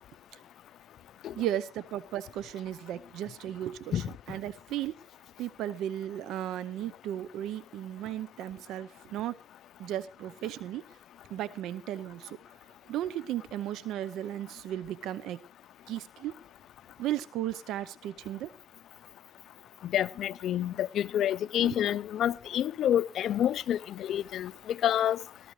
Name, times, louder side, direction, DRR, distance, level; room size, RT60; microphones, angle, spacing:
voice 1, 1.3-4.9 5.4-9.3 9.8-10.8 11.3-12.4 12.9-15.4 15.9-16.3 17.0-18.5 21.6-21.8, right 12 dB, 85° right, 0.7 m, -35 dB
voice 2, 19.9-24.5 24.8-25.2, left 11 dB, 75° left, 0.6 m, -28 dB
20.0 x 13.5 x 3.1 m
cardioid pair, 90°, 0 cm